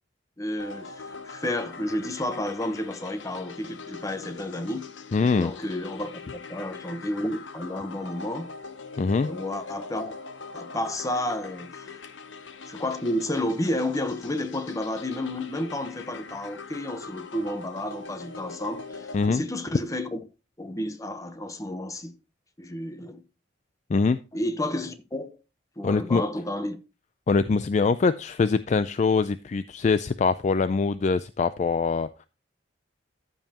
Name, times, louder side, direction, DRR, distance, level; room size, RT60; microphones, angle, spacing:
voice 1, 0.4-4.9 5.4-6.1 6.5-8.5 9.2-10.1 10.5-11.9 12.7-20.2 20.6-22.1 22.6-23.2 24.3-25.4 25.8-26.8, left 1 dB, 20° left, 0.9 m, -31 dB
sound 1, 0.6-19.3, left 4 dB, 80° left, 0.9 m, -42 dB
voice 2, 5.1-5.5 9.0-9.3 19.1-19.4 23.9-24.2 25.8-26.2 27.3-32.3, left 4 dB, 40° left, 0.3 m, -23 dB
13.5 x 5.5 x 2.9 m
head